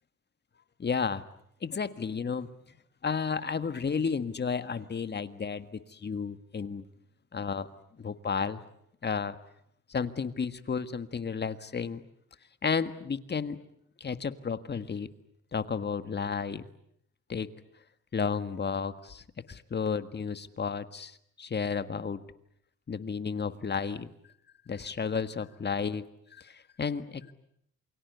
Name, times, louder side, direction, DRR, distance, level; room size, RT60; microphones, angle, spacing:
voice 1, 0.8-1.2 1.6-2.5 3.0-6.8 7.3-7.7 8.0-8.6 9.0-9.4 9.9-12.0 12.6-13.6 14.0-15.1 15.5-16.6 17.3-17.5 18.1-22.2 22.9-24.1 24.7-26.0 26.4-27.3, left 5 dB, 35° left, 11 dB, 1.7 m, -32 dB
28.0 x 24.0 x 8.2 m, 0.72 s
cardioid pair, 90°, 30 cm